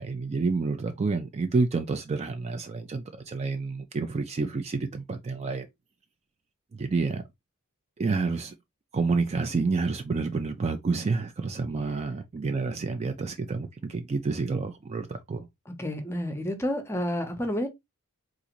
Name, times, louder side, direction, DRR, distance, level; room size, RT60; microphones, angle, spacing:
voice 1, 0.0-5.7 6.7-7.2 8.0-8.5 8.9-15.5, right 4 dB, 30° right, 0.3 m, -29 dB
voice 2, 15.7-17.7, left 1 dB, 10° left, 0.7 m, -30 dB
3.8 x 2.5 x 2.9 m
head